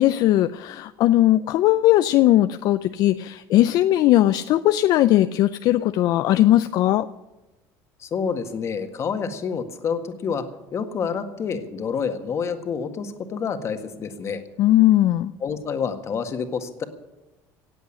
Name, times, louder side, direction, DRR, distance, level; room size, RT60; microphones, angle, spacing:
voice 1, 0.0-7.1 14.6-15.3, left 14 dB, 60° left, 11 dB, 0.5 m, -18 dB
voice 2, 8.0-10.4 10.7-14.4 15.4-16.8, left 6 dB, 35° left, 7 dB, 1.7 m, -28 dB
17.5 x 8.1 x 10.0 m, 1.0 s
cardioid pair, 135°, 8 cm